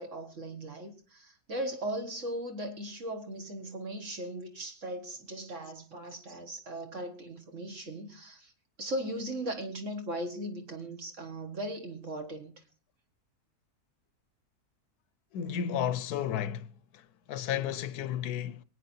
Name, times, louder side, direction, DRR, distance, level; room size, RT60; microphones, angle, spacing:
voice 1, 0.0-8.5 8.8-12.5, right 1 dB, 55° right, 2.0 m, -38 dB
voice 2, 15.3-16.7 16.9-17.0 17.3-18.6, left 9 dB, 80° left, 1.2 m, -32 dB
23.5 x 9.1 x 2.7 m
omnidirectional pair, 1.6 m